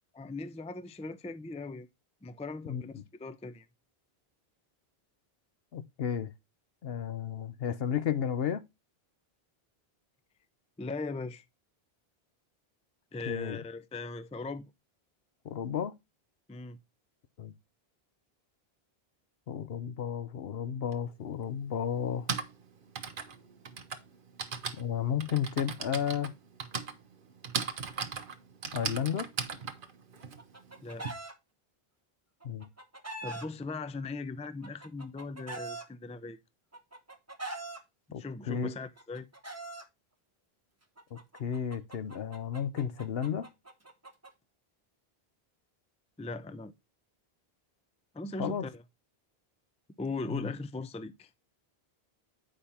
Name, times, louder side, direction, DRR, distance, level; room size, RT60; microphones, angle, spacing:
voice 1, 0.1-1.9 2.2-3.7 10.8-11.4 13.1-14.7 16.5-16.8 30.8-31.1 33.2-36.4 38.1-39.3 46.2-46.7 48.1-48.8 50.0-51.3, left 3 dB, 10° left, 0.3 m, -39 dB
voice 2, 5.7-6.3 6.8-8.6 13.3-13.6 15.4-15.9 17.4-17.5 19.5-22.3 24.8-26.3 28.7-29.3 32.4-32.7 38.1-38.7 41.1-43.5 48.4-48.6 50.3-50.5, left 8 dB, 70° left, 0.9 m, -33 dB
Typing, 20.9-21.0 22.0-31.1, right 5 dB, 55° right, 1.1 m, -38 dB
Chicken rooster, 30.2-31.3 32.4-33.5 34.4-35.8 36.7-37.8 38.8-39.8 41.0-44.3, right 2 dB, 15° right, 1.0 m, -42 dB
8.9 x 5.1 x 4.3 m
omnidirectional pair, 1.0 m